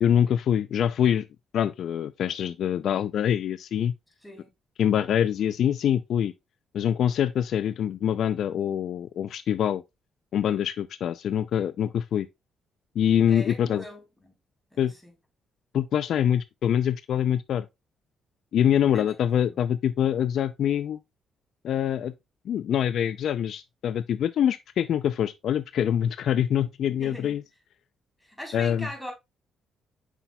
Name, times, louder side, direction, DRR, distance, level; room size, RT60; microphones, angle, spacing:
voice 1, 0.0-1.3 1.5-3.9 4.8-6.3 6.7-9.8 10.3-12.3 13.0-13.8 14.8-14.9 15.7-17.7 18.5-21.0 21.6-22.1 22.5-27.4 28.5-28.9, left 9 dB, 70° left, 0.4 m, -25 dB
voice 2, 13.3-14.3 14.7-15.1 18.9-19.2 27.0-27.4 28.2-29.1, equal, 5° left, 3.7 m, -40 dB
8.1 x 5.8 x 2.3 m
cardioid pair, 90°, 0 cm